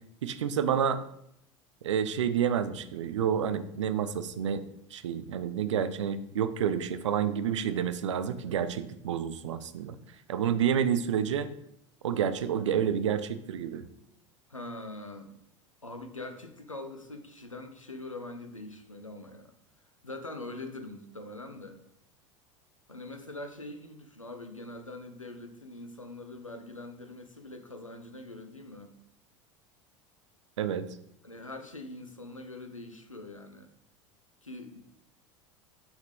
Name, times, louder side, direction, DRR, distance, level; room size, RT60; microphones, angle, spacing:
voice 1, 0.2-1.0 1.8-4.6 4.9-10.0 10.3-11.5 12.0-13.8 30.6-30.8, right 8 dB, 70° right, 12 dB, 0.6 m, -29 dB
voice 2, 14.5-15.4 15.8-19.5 20.0-21.8 22.9-28.9 31.2-33.7 34.4-34.8, left 2 dB, 90° left, 6 dB, 0.8 m, -43 dB
7.1 x 5.7 x 3.4 m, 0.77 s
figure-of-eight pair, 75°, 16 cm